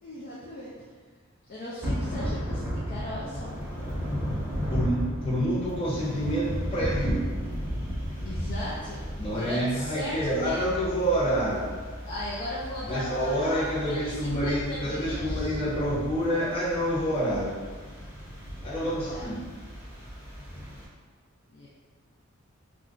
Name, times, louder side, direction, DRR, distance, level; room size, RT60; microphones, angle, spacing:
voice 1, 0.0-0.9 1.5-3.6 8.2-10.9 12.0-15.6 18.9-19.3 21.5-21.7, left 1 dB, 45° left, -7 dB, 0.4 m, -37 dB
Thunder / Rain, 1.8-20.8, equal, 10° right, 0.8 m, -34 dB
voice 2, 4.7-7.3 9.2-11.7 12.8-17.6 18.6-19.5, equal, 25° left, -9 dB, 1.0 m, -28 dB
2.5 x 2.2 x 3.6 m, 1.5 s
head